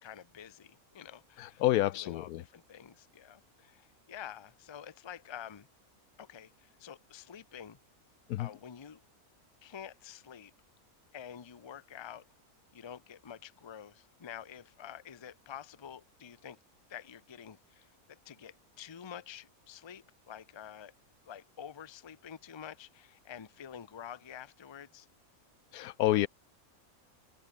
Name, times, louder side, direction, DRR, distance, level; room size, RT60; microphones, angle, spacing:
voice 1, 0.0-1.6 1.9-5.7 6.2-7.8 8.4-9.0 9.6-10.5 11.1-12.3 12.7-16.6 16.9-20.9 21.3-25.1, left 9 dB, 35° left, 0.5 m, -48 dB
voice 2, 1.6-2.4 8.3-8.5 25.7-26.3, left 15 dB, 85° left, 1.1 m, -28 dB
omnidirectional pair, 1.5 m